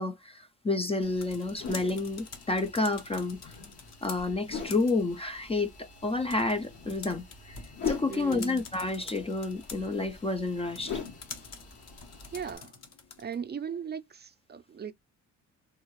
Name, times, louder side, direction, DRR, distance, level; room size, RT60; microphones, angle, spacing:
voice 1, 0.0-3.6 4.0-7.6 7.9-11.0, left 3 dB, 20° left, 0.4 m, -30 dB
sound 1, 1.0-12.6, left 6 dB, 75° left, 1.6 m, -42 dB
sound 2, 1.0-13.5, left 5 dB, 60° left, 1.0 m, -48 dB
voice 2, 8.1-8.6 12.3-12.7 13.2-14.9, right 7 dB, 35° right, 0.5 m, -37 dB
3.7 x 2.3 x 3.1 m
cardioid pair, 90°, 30 cm